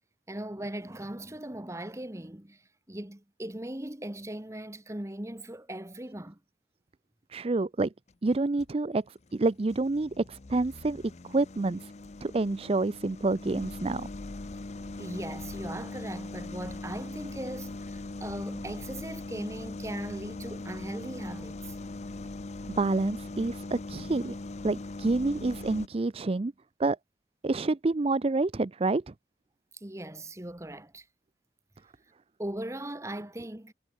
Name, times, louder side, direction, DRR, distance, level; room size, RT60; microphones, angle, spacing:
voice 1, 0.3-2.6 2.9-6.4 15.0-21.7 29.7-31.0 32.4-33.7, right 1 dB, 15° right, 1.3 m, -39 dB
voice 2, 7.3-7.9 8.2-11.0 11.3-11.9 12.2-14.1 22.7-24.4 24.6-26.5 26.8-27.0 27.4-29.1, right 3 dB, 35° right, 0.5 m, -28 dB
sound 1, 8.1-8.7 9.3-25.9, left 2 dB, 40° left, 0.6 m, -40 dB
head